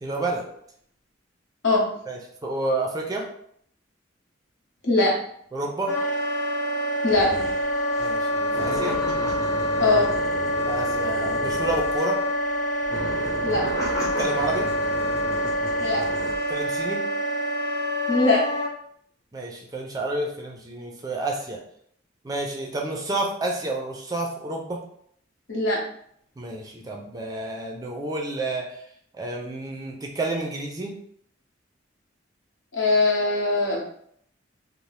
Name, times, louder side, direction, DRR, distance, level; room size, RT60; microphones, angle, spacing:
voice 1, 0.0-0.4 2.1-3.3 5.5-6.0 8.0-9.0 10.7-12.2 14.2-14.8 16.5-17.1 19.3-21.6 22.2-24.8 26.4-28.8 29.2-31.0, right 2 dB, 20° right, 0 dB, 0.4 m, -30 dB
Wind instrument woodwind instrument, 5.9-18.7, equal, 60° left, 0.5 m, -26 dB
sound 1, 7.1-7.6 7.9-8.1 8.5-12.2 12.8-16.4, right 1 dB, 20° left, 0.7 m, -34 dB
voice 2, 9.8-10.1 13.4-13.6 15.8-16.0 18.1-18.4 25.5-25.8 32.7-33.8, left 2 dB, 80° left, -4 dB, 1.0 m, -21 dB
2.7 x 2.0 x 3.1 m, 0.67 s
head